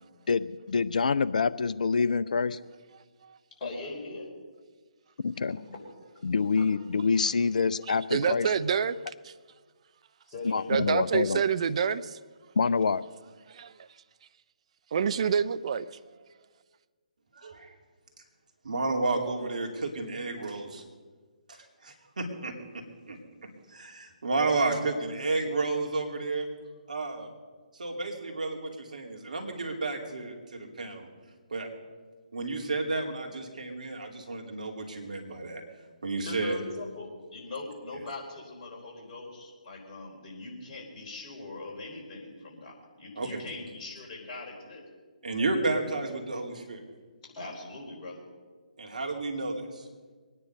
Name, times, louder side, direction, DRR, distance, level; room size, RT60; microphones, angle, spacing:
voice 1, 0.3-2.6 5.2-5.6 6.2-8.5 10.4-11.4 12.6-13.0, left 5 dB, 65° left, 0.4 m, -26 dB
voice 2, 3.6-4.3 5.5-5.8 6.6-6.7 10.3-10.7 36.2-44.8 47.2-48.2, left 3 dB, 35° left, 4.3 m, -41 dB
voice 3, 8.1-9.0 9.2-9.3 10.7-12.2 13.5-13.7 14.9-15.9, right 7 dB, 50° right, 0.5 m, -27 dB
voice 4, 17.4-17.7 18.6-20.8 21.5-21.6 21.8-26.5 26.9-27.3 27.8-31.1 31.5-31.7 32.3-35.6 36.0-36.6 43.2-43.4 45.2-46.8 48.8-49.8, right 3 dB, 65° right, 2.8 m, -32 dB
23.0 x 9.9 x 5.4 m
figure-of-eight pair, 140°, 4 cm